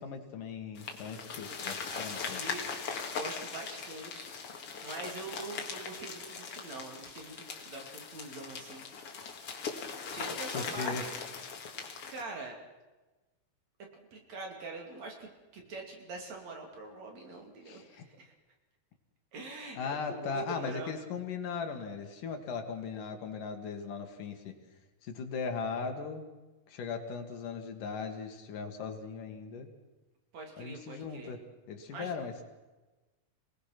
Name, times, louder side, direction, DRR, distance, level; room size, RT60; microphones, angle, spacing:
voice 1, 0.0-2.4 10.5-11.0 17.7-18.0 19.8-24.6 25.0-26.3 26.7-29.7 30.6-31.4 31.7-32.4, left 5 dB, 65° left, 5 dB, 3.2 m, -38 dB
sound 1, 0.8-12.2, left 5 dB, 45° left, 2.6 m, -40 dB
voice 2, 1.9-2.6 3.1-8.9 10.1-11.2 12.1-12.6 13.9-18.3 19.3-20.9 30.3-31.4 31.9-32.1, right 3 dB, 50° right, 2 dB, 3.8 m, -44 dB
27.5 x 19.0 x 5.9 m, 1.1 s
omnidirectional pair, 4.1 m